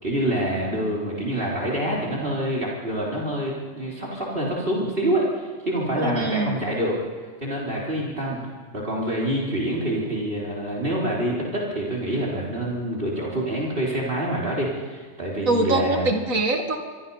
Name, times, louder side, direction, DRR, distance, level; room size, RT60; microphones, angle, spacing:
voice 1, 0.0-6.9 7.4-8.4 8.7-16.1, right 1 dB, 45° right, -4 dB, 4.2 m, -26 dB
voice 2, 6.0-6.5 15.5-16.8, right 2 dB, 85° right, 5 dB, 2.4 m, -23 dB
27.0 x 24.0 x 5.6 m, 1.5 s
omnidirectional pair, 1.4 m